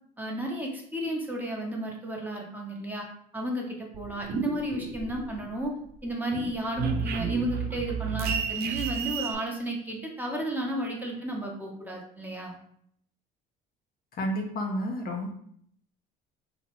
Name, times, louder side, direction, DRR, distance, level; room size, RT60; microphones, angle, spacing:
voice 1, 0.2-3.1 3.3-5.7 6.0-12.6, right 1 dB, 10° right, -1 dB, 0.7 m, -33 dB
sound 1, 3.9-5.6 6.0-9.3, right 6 dB, 50° right, 0.4 m, -32 dB
voice 2, 14.1-15.3, equal, 45° left, 2 dB, 0.6 m, -30 dB
2.7 x 2.0 x 3.0 m, 0.66 s
supercardioid pair, 75°, 21 cm